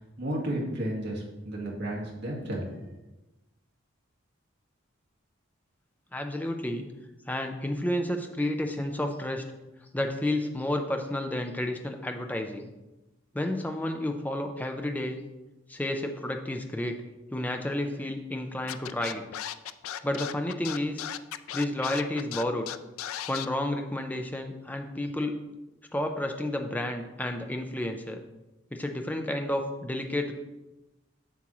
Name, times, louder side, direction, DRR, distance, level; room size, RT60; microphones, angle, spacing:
voice 1, 0.2-2.6, right 1 dB, 55° right, -3 dB, 1.9 m, -32 dB
voice 2, 6.1-6.9 7.3-9.4 9.9-12.7 13.3-15.2 15.7-17.0 17.3-19.2 20.0-21.1 21.5-22.7 23.3-25.4 25.9-28.2 28.7-30.3, left 1 dB, 10° left, 5 dB, 0.4 m, -31 dB
Scratching (performance technique), 18.7-23.5, left 11 dB, 90° left, 0.4 m, -36 dB
7.5 x 7.2 x 3.1 m, 1.0 s
head